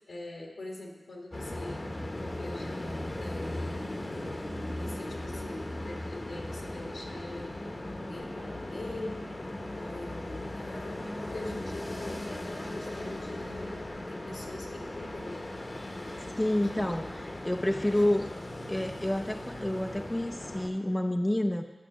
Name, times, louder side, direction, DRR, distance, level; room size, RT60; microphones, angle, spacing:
voice 1, 0.1-1.9 2.2-2.9 3.2-4.0 4.8-9.3 9.7-15.5 16.6-17.0 17.8-18.0, left 2 dB, 80° left, -1 dB, 1.6 m, -43 dB
sound 1, 1.3-20.7, left 1 dB, 45° left, 1.0 m, -38 dB
voice 2, 16.4-18.3 18.7-21.6, left 1 dB, 15° left, 5 dB, 0.6 m, -29 dB
9.8 x 5.7 x 6.1 m, 1.3 s
cardioid pair, 40°, 0 cm